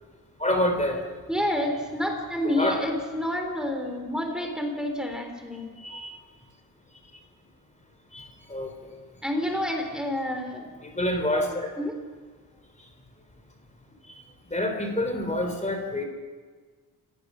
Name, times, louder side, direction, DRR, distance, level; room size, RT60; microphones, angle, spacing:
voice 1, 0.4-1.0 2.4-2.8 5.8-6.2 8.1-8.9 10.8-11.7 14.5-16.0, left 1 dB, 20° left, 4 dB, 3.4 m, -27 dB
voice 2, 1.3-5.6 9.2-10.7 11.8-11.9, left 1 dB, ahead, 3 dB, 3.6 m, -29 dB
29.0 x 16.5 x 6.3 m, 1.5 s
wide cardioid pair, 110°, 39 cm